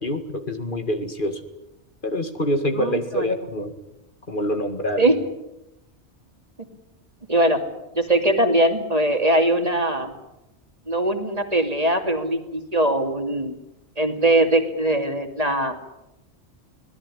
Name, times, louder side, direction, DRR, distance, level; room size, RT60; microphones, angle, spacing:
voice 1, 0.0-1.4 2.0-3.7 4.3-5.1, equal, 50° left, 7 dB, 2.3 m, -26 dB
voice 2, 2.8-3.3 5.0-5.2 6.6-6.7 7.3-7.6 7.9-10.1 10.9-13.5 14.0-15.7, right 1 dB, 35° right, 5 dB, 2.7 m, -21 dB
25.0 x 18.0 x 10.0 m, 0.93 s
omnidirectional pair, 1.2 m